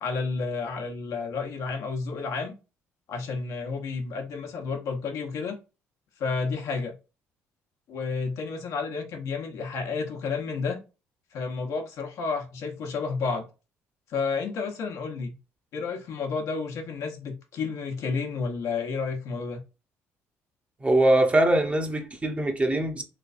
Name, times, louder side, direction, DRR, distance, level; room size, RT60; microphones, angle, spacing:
voice 1, 0.0-2.5 3.1-5.6 6.2-6.9 7.9-10.8 11.3-13.4 14.1-15.3 15.7-19.6, left 4 dB, 70° left, 1.0 m, -31 dB
voice 2, 20.8-23.0, right 1 dB, 25° right, 0.9 m, -22 dB
3.2 x 3.1 x 2.5 m
supercardioid pair, 70°, 6 cm